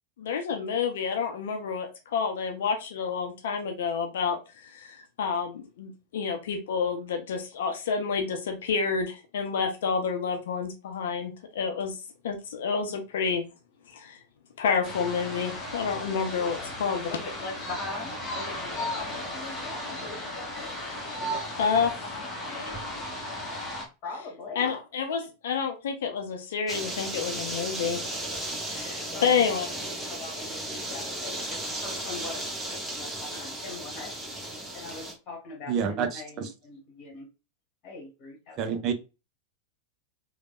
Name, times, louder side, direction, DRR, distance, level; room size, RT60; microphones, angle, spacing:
voice 1, 0.2-11.9 12.2-13.4 13.9-14.2 14.6-17.1 21.6-22.2 22.5-22.6 24.5-28.0 28.7-29.7, left 6 dB, 60° left, 0.5 m, -29 dB
sound 1, 14.8-23.8, left 1 dB, 15° left, 0.9 m, -35 dB
voice 2, 16.4-16.7 17.1-20.7 21.2-21.4 21.7-22.7 24.0-24.7 29.1-29.6 30.0-34.2 34.7-37.3 37.8-38.8, left 3 dB, 35° left, 1.1 m, -41 dB
sound 2, 26.7-35.1, right 1 dB, 10° right, 0.9 m, -35 dB
voice 3, 35.7-36.5 38.6-38.9, right 7 dB, 35° right, 0.5 m, -28 dB
3.2 x 2.0 x 2.3 m
figure-of-eight pair, 90°, 0 cm